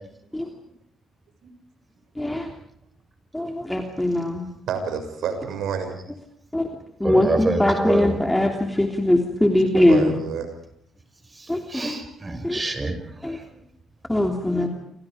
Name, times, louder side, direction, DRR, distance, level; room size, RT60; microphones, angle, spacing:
voice 1, 2.2-2.5 3.3-4.4 6.5-6.7 7.0-10.1 11.5-11.6 12.4-12.6 13.2-13.4 14.1-14.7, left 1 dB, 5° left, 3 dB, 3.1 m, -21 dB
voice 2, 4.7-5.9 9.8-10.5, right 6 dB, 80° right, 7 dB, 6.4 m, -28 dB
voice 3, 7.0-8.2 11.7-13.0, right 2 dB, 25° right, 8 dB, 6.0 m, -26 dB
29.5 x 27.0 x 5.1 m, 0.68 s
cardioid pair, 90°, 0 cm